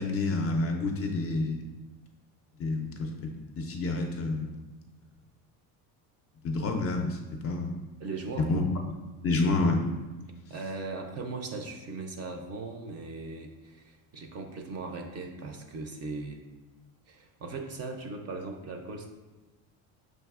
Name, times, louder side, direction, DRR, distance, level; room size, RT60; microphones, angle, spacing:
voice 1, 0.0-1.6 2.6-4.6 6.4-7.8 8.4-8.6 9.2-9.8, left 3 dB, 35° left, 2 dB, 0.4 m, -29 dB
voice 2, 8.0-8.5 10.5-16.4 17.1-19.1, right 3 dB, 35° right, 4 dB, 0.4 m, -38 dB
6.1 x 2.6 x 2.4 m, 1.1 s
supercardioid pair, 110°, 44 cm